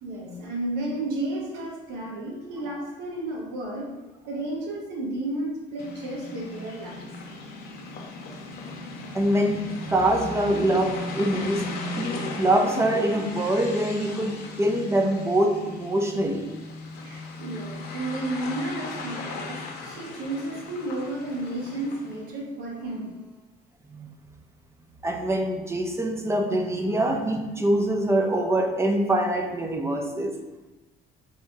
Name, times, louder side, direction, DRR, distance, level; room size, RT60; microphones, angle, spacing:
voice 1, 0.0-3.9 4.2-7.1 17.0-23.2, right 2 dB, 85° right, -2 dB, 1.1 m, -32 dB
sound 1, 5.8-22.2, left 2 dB, 70° left, 0.7 m, -37 dB
voice 2, 9.1-11.6 12.0-16.4 23.9-24.1 25.0-30.3, right 1 dB, 15° right, 3 dB, 0.5 m, -24 dB
4.1 x 2.7 x 3.6 m, 1.1 s
cardioid pair, 110°, 17 cm